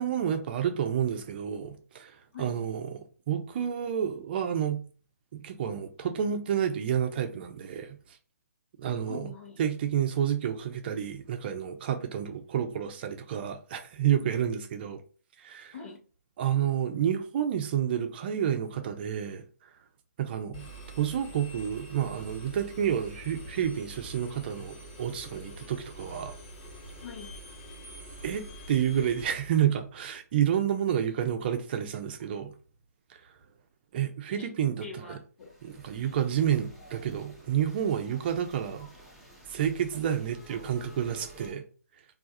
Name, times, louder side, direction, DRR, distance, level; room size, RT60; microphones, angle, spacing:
voice 1, 0.0-2.1 2.4-4.8 5.3-8.0 8.8-9.2 9.6-15.0 15.4-15.7 16.4-19.4 20.2-20.7 21.0-26.4 28.2-32.5 33.9-35.2 35.6-38.9 39.5-41.6, right 9 dB, 35° right, 0.5 m, -29 dB
voice 2, 2.3-2.7 9.1-9.6 14.2-14.6 15.7-16.0 27.0-27.3 34.3-34.5 34.8-35.5, left 5 dB, 50° left, 0.9 m, -44 dB
Engine, 20.5-29.3, right 1 dB, 35° left, 1.2 m, -46 dB
sound 1, 35.4-41.5, right 1 dB, ahead, 0.7 m, -52 dB
2.4 x 2.3 x 4.0 m
figure-of-eight pair, 140°, 9 cm